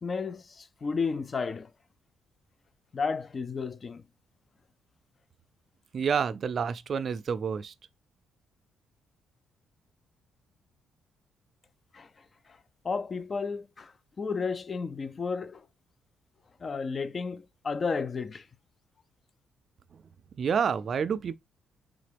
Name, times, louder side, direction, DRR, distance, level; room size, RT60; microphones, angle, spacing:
voice 1, 0.0-1.7 2.9-4.0 11.9-12.1 12.5-12.6 12.8-15.6 16.6-18.5, left 5 dB, 35° left, 0.4 m, -32 dB
voice 2, 5.9-7.7 20.4-21.3, right 6 dB, 50° right, 0.3 m, -28 dB
3.8 x 3.7 x 3.3 m
cardioid pair, 90°, 0 cm